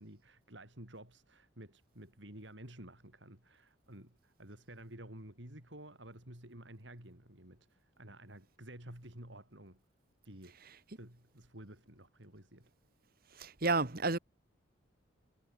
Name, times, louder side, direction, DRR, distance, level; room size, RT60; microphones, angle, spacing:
voice 1, 0.0-9.8 10.2-10.6 11.0-12.7, right 1 dB, 65° right, 5.8 m, -52 dB
voice 2, 13.4-14.2, right 3 dB, 50° right, 1.7 m, -31 dB
head